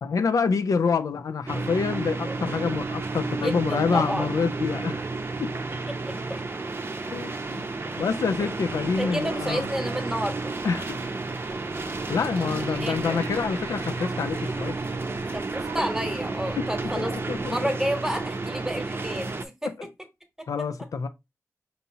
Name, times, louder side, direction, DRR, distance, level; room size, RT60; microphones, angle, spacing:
voice 1, 0.0-5.1 5.4-5.5 7.1-7.6 7.9-9.7 10.6-11.1 11.8-14.8 16.6-16.7 17.0-17.6 20.5-21.1, left 5 dB, 75° left, 0.4 m, -27 dB
sound 1, 1.5-19.4, right 3 dB, 40° right, 0.6 m, -31 dB
voice 2, 3.3-4.4 5.9-6.4 8.8-10.5 12.4-13.2 15.3-19.7 20.4-20.5, equal, 5° right, 1.1 m, -31 dB
Laughter, 12.2-15.7, right 3 dB, 85° right, 0.7 m, -46 dB
5.4 x 2.7 x 2.8 m
cardioid pair, 70°, 6 cm